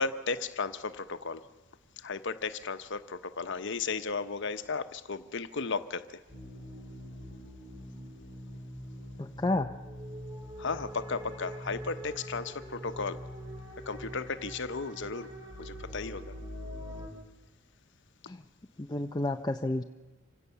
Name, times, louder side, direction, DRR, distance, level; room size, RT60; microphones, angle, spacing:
voice 1, 0.0-1.4 2.0-6.2 10.6-13.2 13.9-15.3 15.6-16.3, left 4 dB, 60° left, 11 dB, 1.0 m, -34 dB
sound 1, 6.3-17.1, equal, 20° right, 4.1 m, -43 dB
voice 2, 9.2-9.7 18.3-18.4 18.8-19.8, left 2 dB, 20° left, 5 dB, 0.6 m, -30 dB
26.5 x 16.5 x 6.9 m, 1.3 s
head